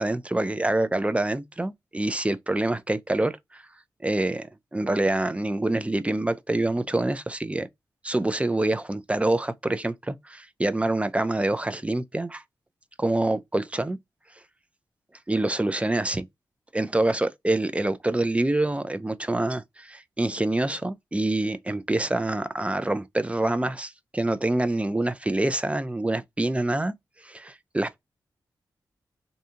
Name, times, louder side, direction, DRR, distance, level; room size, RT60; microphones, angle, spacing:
voice 1, 0.0-3.6 4.0-7.7 8.0-12.4 13.0-14.0 15.3-16.3 16.7-26.9 27.2-28.0, right 2 dB, 15° right, 0.4 m, -26 dB
2.6 x 2.4 x 2.5 m
cardioid pair, 50°, 8 cm